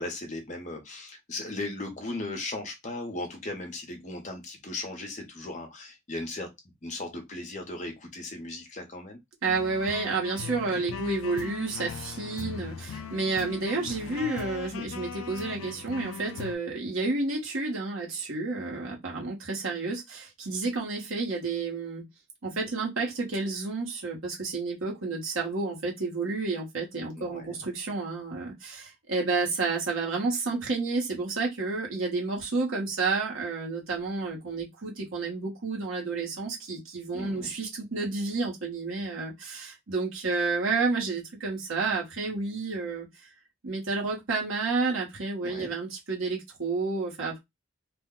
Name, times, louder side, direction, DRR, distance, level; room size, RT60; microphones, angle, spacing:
voice 1, 0.0-6.5 6.8-9.2 10.7-10.8 13.8-14.0 27.2-27.6 37.1-37.5 45.4-45.7, left 2 dB, 35° left, 0.8 m, -37 dB
voice 2, 9.4-22.0 22.4-43.1 43.6-47.4, right 3 dB, 75° right, 1.1 m, -30 dB
sound 1, 9.5-16.5, left 7 dB, 80° left, 0.4 m, -39 dB
2.4 x 2.1 x 3.7 m
head